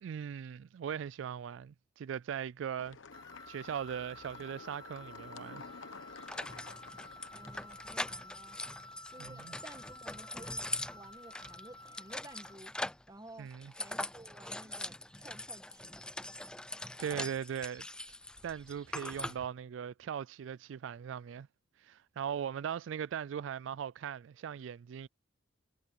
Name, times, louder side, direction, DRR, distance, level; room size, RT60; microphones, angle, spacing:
voice 1, 0.0-3.0 3.5-5.6 9.2-9.5 13.4-13.7 17.0-17.9 18.4-21.5 21.8-25.1, right 8 dB, 80° right, 0.3 m, -39 dB
sound 1, 2.8-8.2, left 4 dB, 85° left, 1.0 m, -52 dB
sound 2, 3.1-12.7, left 2 dB, 20° left, 1.2 m, -52 dB
sound 3, 5.6-5.7 6.3-13.1 13.5-19.5, left 1 dB, 5° left, 0.4 m, -42 dB
voice 2, 7.3-8.6 9.1-10.7 10.9-12.7 13.1-13.5 13.8-16.0, right 1 dB, 20° right, 1.7 m, -53 dB
head